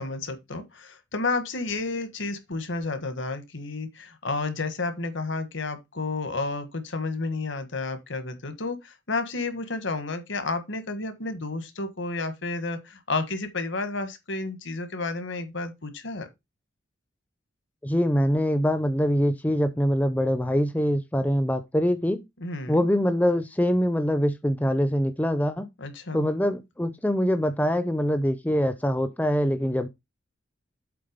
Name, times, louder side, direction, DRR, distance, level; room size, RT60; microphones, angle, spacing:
voice 1, 0.0-16.3 22.4-22.9 25.8-26.3, left 3 dB, 75° left, 1.5 m, -31 dB
voice 2, 17.8-22.2 22.7-25.7 26.1-29.9, equal, 10° left, 0.5 m, -24 dB
7.8 x 3.7 x 5.1 m
head